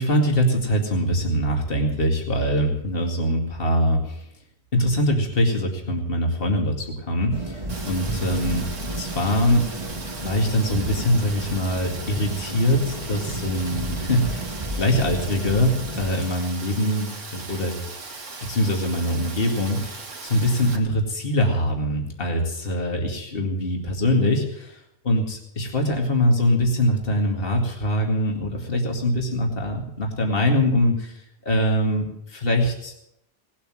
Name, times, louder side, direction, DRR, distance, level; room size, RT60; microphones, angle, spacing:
voice 1, 0.0-4.2 4.7-8.7 9.0-9.6 10.2-17.8 18.4-32.9, left 1 dB, 50° left, 1 dB, 2.5 m, -23 dB
sound 1, 7.3-16.1, right 1 dB, 25° right, 1.5 m, -32 dB
Rain, 7.7-20.8, right 3 dB, 90° right, 2.3 m, -38 dB
18.5 x 8.6 x 7.7 m, 0.79 s
omnidirectional pair, 1.3 m